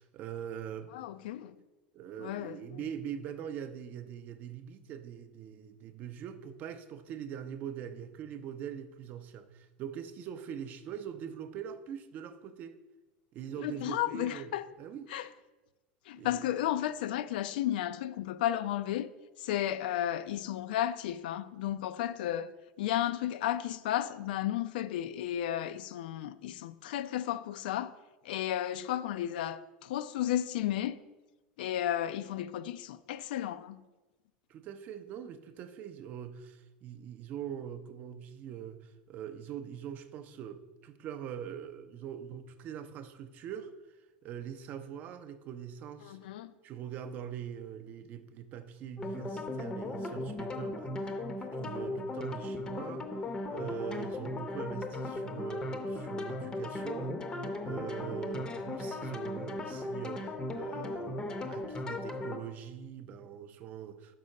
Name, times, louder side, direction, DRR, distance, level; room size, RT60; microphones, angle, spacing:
voice 1, 0.0-1.1 1.9-12.8 13.3-15.1 16.2-16.5 34.5-43.7 44.2-46.2 46.6-53.1 53.5-57.3 57.6-64.2, right 9 dB, 35° right, 0.5 m, -43 dB
voice 2, 0.9-1.5 2.2-2.8 13.6-14.7 15.1-15.3 16.1-19.1 19.4-22.5 22.8-27.9 28.2-31.0 31.6-33.8 46.0-46.5, left 12 dB, 80° left, 0.4 m, -33 dB
sound 1, 49.0-62.4, left 2 dB, 15° left, 0.6 m, -37 dB
5.4 x 4.8 x 6.3 m
supercardioid pair, 155°, 5 cm